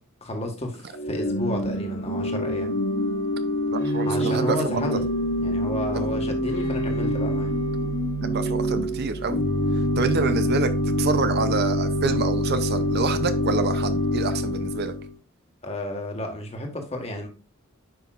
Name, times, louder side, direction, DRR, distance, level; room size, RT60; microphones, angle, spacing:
voice 1, 0.2-2.7 4.0-5.0 5.4-7.5 15.6-17.3, left 1 dB, 30° left, 1.6 m, -32 dB
Organ / Church bell, 0.9-15.1, equal, 60° left, 2.3 m, -25 dB
voice 2, 3.7-4.7 5.9-6.1 8.2-9.4 10.0-10.7 11.0-14.9, right 4 dB, 50° right, 0.5 m, -27 dB
9.7 x 5.7 x 2.5 m
head